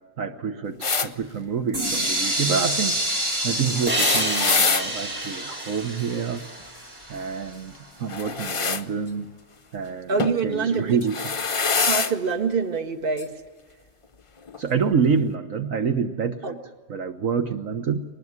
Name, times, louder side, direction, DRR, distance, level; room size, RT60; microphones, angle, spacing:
voice 1, 0.2-6.4 7.1-7.7 8.0-9.3 9.7-10.1 10.4-11.3 14.6-16.6 16.9-18.0, right 6 dB, 65° right, 6 dB, 1.5 m, -27 dB
sound 1, 0.8-1.1 3.7-4.9 8.1-8.8 10.2-10.4 11.0-12.1 13.2-13.3 14.5-14.6, left 5 dB, 35° left, 0.5 m, -24 dB
sound 2, 1.7-7.6, right 1 dB, 85° right, 6.2 m, -29 dB
sound 3, 3.9-7.2, right 1 dB, 5° right, 1.9 m, -29 dB
voice 2, 10.1-11.0 11.9-13.3 16.4-16.5, right 5 dB, 40° right, 7 dB, 1.7 m, -25 dB
22.0 x 20.0 x 9.7 m, 1.4 s
omnidirectional pair, 1.5 m